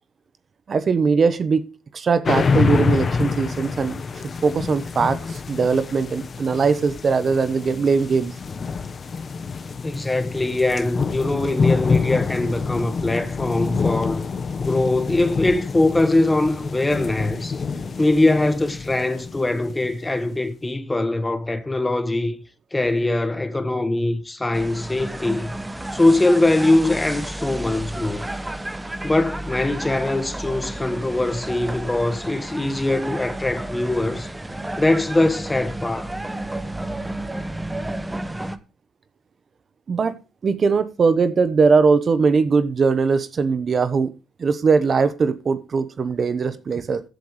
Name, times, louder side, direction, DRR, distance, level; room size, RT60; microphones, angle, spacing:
voice 1, 0.7-1.6 1.9-3.9 4.4-8.3 39.9-44.1 44.4-47.0, right 5 dB, 45° right, 1.0 m, -20 dB
sound 1, 2.2-20.1, left 5 dB, 40° left, 1.1 m, -26 dB
voice 2, 9.8-14.2 14.6-17.6 18.0-22.4 22.7-25.5 25.9-28.3 29.0-34.3 34.8-36.1, left 2 dB, 15° left, 1.4 m, -22 dB
sound 2, 24.5-38.6, right 1 dB, 10° right, 1.0 m, -32 dB
15.0 x 8.1 x 3.2 m
cardioid pair, 90°, 0 cm